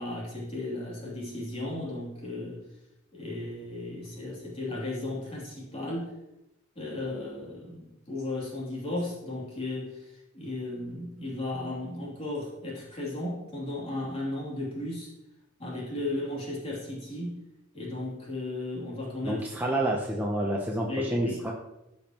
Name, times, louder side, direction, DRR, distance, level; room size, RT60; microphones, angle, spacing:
voice 1, 0.0-2.6 3.1-6.1 6.8-10.0 10.3-15.1 15.6-17.4 17.7-19.4 20.9-21.5, left 2 dB, 30° left, -5 dB, 2.7 m, -35 dB
voice 2, 19.2-21.5, right 1 dB, 10° right, -1 dB, 0.7 m, -29 dB
14.0 x 5.3 x 2.9 m, 0.89 s
head